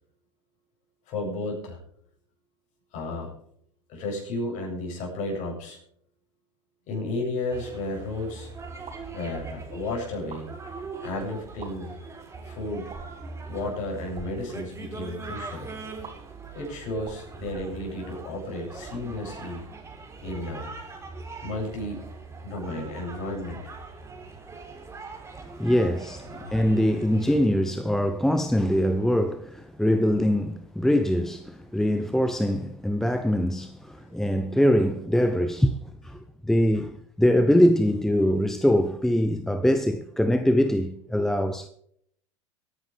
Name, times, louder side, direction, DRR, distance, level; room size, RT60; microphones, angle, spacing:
voice 1, 1.1-1.8 2.9-3.3 3.9-5.8 6.9-8.5 9.1-10.5 11.0-12.0 12.4-12.9 13.5-15.7 16.5-19.6 20.2-20.7 21.4-22.1 22.4-23.7 26.3-26.5 34.0-34.2, left 2 dB, 50° left, 7.5 m, -33 dB
sound 1, 7.5-27.4, right 4 dB, 15° right, 4.0 m, -41 dB
sound 2, 8.8-9.1 10.1-10.4 11.5-11.7 12.9-13.2 14.0-14.3 16.0-16.1 17.0-18.2, right 5 dB, 35° right, 5.1 m, -44 dB
voice 2, 25.4-41.7, equal, ahead, 0.8 m, -23 dB
22.0 x 10.5 x 3.5 m
hypercardioid pair, 90°, 16 cm